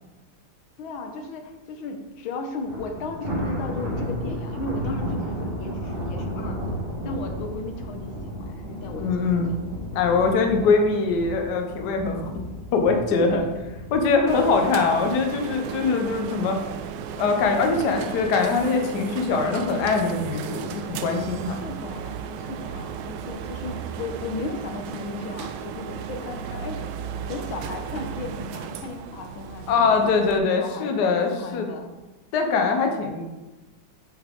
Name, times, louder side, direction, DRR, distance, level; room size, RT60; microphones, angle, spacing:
voice 1, 0.8-6.7 7.0-9.6 10.7-10.8 13.1-13.5 15.8-15.9 21.6-27.0 27.3-31.0 31.3-31.9 32.8-33.0, left 3 dB, 85° left, 5 dB, 1.6 m, -35 dB
Thunder, 2.6-15.9 16.3-16.6 17.0-17.1 18.0-18.6, equal, 30° right, 2.0 m, -33 dB
voice 2, 9.0-9.5 9.9-12.3 12.7-13.4 13.9-16.6 17.2-21.6 29.7-31.7 32.3-33.3, left 4 dB, 65° left, 4 dB, 1.3 m, -22 dB
sound 1, 14.3-30.4, right 8 dB, 85° right, 1.4 m, -35 dB
8.0 x 5.5 x 3.7 m, 1.1 s
omnidirectional pair, 2.2 m